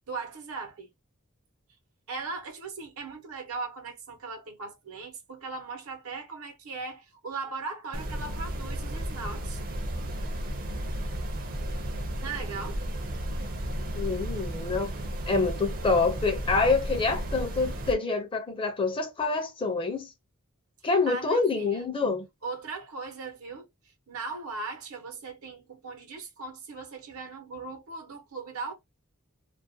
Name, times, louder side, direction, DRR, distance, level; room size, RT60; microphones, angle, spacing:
voice 1, 0.1-0.9 2.1-9.6 12.2-12.8 21.1-21.9 22.4-23.7 24.1-28.7, right 4 dB, 85° right, 0.8 m, -38 dB
sound 1, 7.9-17.9, right 1 dB, 40° right, 0.5 m, -33 dB
voice 2, 13.9-14.9 15.3-20.1 20.8-22.3, left 3 dB, 25° left, 0.5 m, -26 dB
2.4 x 2.0 x 2.6 m
head